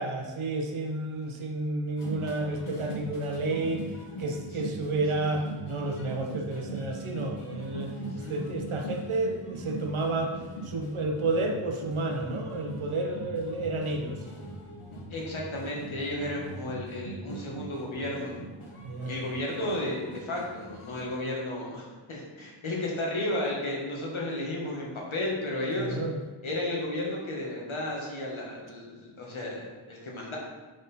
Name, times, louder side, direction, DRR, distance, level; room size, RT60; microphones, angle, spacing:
voice 1, 0.0-3.9 4.2-10.4 10.6-14.2 18.8-19.2 25.8-26.2, right 2 dB, 75° right, 2 dB, 1.1 m, -31 dB
sound 1, 2.0-21.0, right 1 dB, 90° left, 1.2 m, -41 dB
voice 2, 8.0-8.4 15.1-18.4 19.1-26.0 26.4-30.4, left 1 dB, 70° left, -2 dB, 1.7 m, -33 dB
5.0 x 4.3 x 5.5 m, 1.3 s
wide cardioid pair, 105°, 49 cm